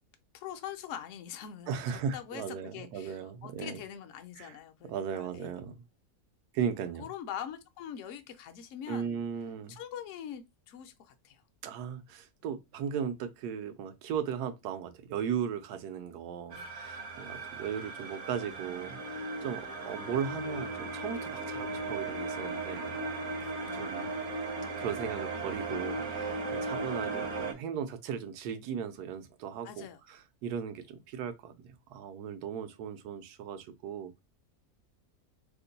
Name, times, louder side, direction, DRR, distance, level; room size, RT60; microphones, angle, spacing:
voice 1, 0.3-2.4 2.7-5.5 7.0-9.2 9.7-11.4 16.5-16.7 17.3-17.5 23.4-23.7 29.6-30.0, left 9 dB, 65° left, 0.8 m, -43 dB
voice 2, 1.7-3.8 4.4-4.5 4.8-5.8 6.5-7.1 8.9-9.8 11.6-23.0 23.7-24.1 24.8-34.2, right 7 dB, 85° right, 1.2 m, -37 dB
sound 1, 16.5-27.5, right 3 dB, 60° right, 0.9 m, -37 dB
3.1 x 2.1 x 3.8 m
omnidirectional pair, 1.6 m